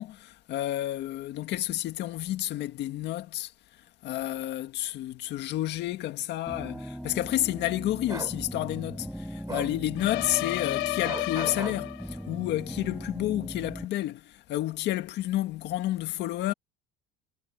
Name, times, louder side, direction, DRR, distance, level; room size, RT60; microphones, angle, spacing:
voice 1, 0.0-16.5, left 14 dB, 55° left, 1.9 m, -30 dB
sound 1, 6.5-13.8, equal, ahead, 4.6 m, -39 dB
Bark, 8.1-8.3 9.5-9.7 11.0-11.8, right 4 dB, 15° right, 6.0 m, -37 dB
sound 2, 10.0-12.3, left 20 dB, 80° left, 1.3 m, -32 dB
cardioid pair, 140°, 21 cm